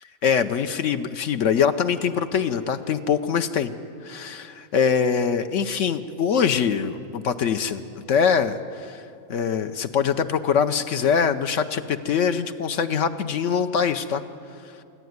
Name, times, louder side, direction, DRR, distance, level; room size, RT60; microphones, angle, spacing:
voice 1, 0.2-3.7 4.0-9.0 9.3-14.2, left 7 dB, 65° left, 9 dB, 1.0 m, -23 dB
26.5 x 10.5 x 9.5 m, 2.6 s
omnidirectional pair, 1.5 m